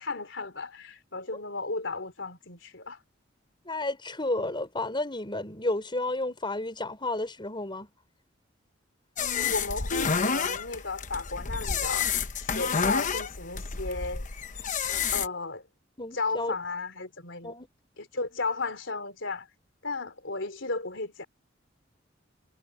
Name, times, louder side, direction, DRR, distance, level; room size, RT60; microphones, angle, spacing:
voice 1, 0.0-3.0 9.2-12.1 12.4-14.3 15.1-15.7 16.1-17.5 18.0-19.5 19.8-21.2, left 3 dB, 70° left, 4.2 m, -34 dB
voice 2, 3.7-7.9 16.0-16.5 17.4-17.7, left 2 dB, 25° left, 5.9 m, -31 dB
sound 1, 9.2-15.3, left 6 dB, 40° left, 1.0 m, -29 dB
head